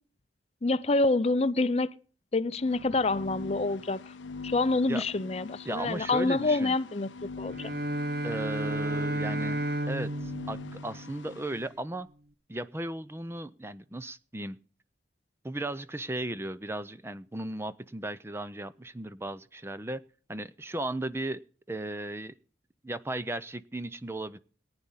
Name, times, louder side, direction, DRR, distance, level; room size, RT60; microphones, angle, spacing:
voice 1, 0.6-1.9 2.3-4.0 4.4-7.1 7.4-7.7, left 3 dB, 35° left, 0.6 m, -27 dB
sound 1, 2.5-11.6, left 4 dB, 80° left, 0.6 m, -43 dB
voice 2, 4.9-5.3 5.7-6.8 8.2-12.1 12.5-14.6 15.4-20.0 20.3-21.4 21.7-22.3 22.8-24.4, right 1 dB, 15° right, 0.5 m, -36 dB
Bowed string instrument, 7.4-11.6, right 1 dB, 60° right, 0.8 m, -33 dB
18.5 x 9.7 x 4.0 m
head